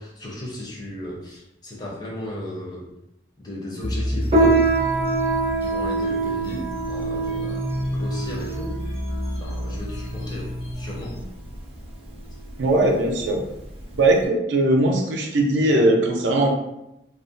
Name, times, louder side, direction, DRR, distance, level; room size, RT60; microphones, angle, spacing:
voice 1, 0.0-2.9 3.4-4.7 5.6-8.8 9.4-11.2, left 1 dB, 25° left, -3 dB, 0.5 m, -35 dB
sound 1, 3.8-11.2, equal, 60° left, 0.6 m, -30 dB
Piano, 4.3-14.2, right 3 dB, 30° right, 0.5 m, -25 dB
voice 2, 12.6-13.4 13.9-16.5, right 1 dB, 90° right, 1 dB, 0.5 m, -19 dB
2.4 x 2.1 x 2.5 m, 0.87 s
head